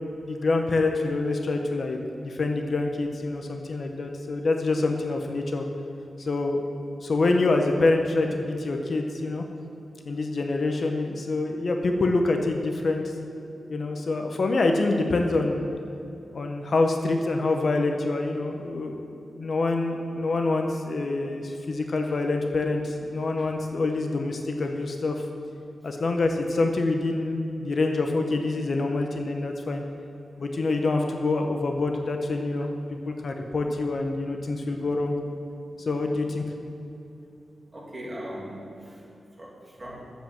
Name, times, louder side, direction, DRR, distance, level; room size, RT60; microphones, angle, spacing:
voice 1, 0.2-5.6 6.2-6.6 7.0-9.4 10.1-13.0 13.7-15.7 16.3-25.1 25.8-29.8 30.4-32.7 33.1-35.2 35.8-36.5, left 2 dB, 50° left, 3 dB, 0.8 m, -26 dB
voice 2, 35.7-36.2 37.7-39.0 39.4-40.0, equal, 20° right, -5 dB, 2.7 m, -40 dB
10.0 x 7.6 x 7.5 m, 2.8 s
wide cardioid pair, 150°, 0 cm